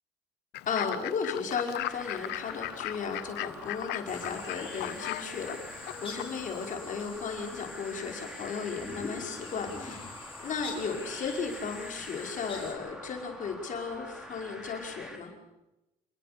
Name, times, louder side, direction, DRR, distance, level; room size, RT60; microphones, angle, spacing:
Fowl / Bird, 0.5-6.7, left 16 dB, 85° left, 0.9 m, -38 dB
voice 1, 0.7-10.0 10.4-15.3, left 5 dB, 50° left, 2 dB, 5.3 m, -35 dB
sound 1, 1.8-15.2, equal, 5° right, 4.4 m, -46 dB
sound 2, 4.1-12.7, left 4 dB, 30° left, 7.1 m, -44 dB
27.5 x 20.5 x 6.9 m, 0.97 s
cardioid pair, 110°, 17 cm